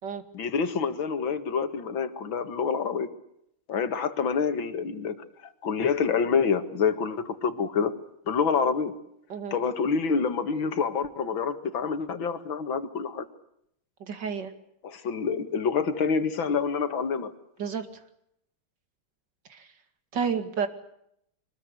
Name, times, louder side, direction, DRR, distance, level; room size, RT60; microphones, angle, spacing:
voice 1, 0.3-3.1 3.7-5.2 5.4-7.9 8.3-8.9 9.5-13.3 14.8-17.3, left 5 dB, 70° left, 10 dB, 2.6 m, -27 dB
voice 2, 14.0-14.5 17.6-17.9 19.5-19.7 20.1-20.7, right 6 dB, 55° right, 9 dB, 2.8 m, -30 dB
25.5 x 20.5 x 8.1 m, 0.75 s
omnidirectional pair, 2.3 m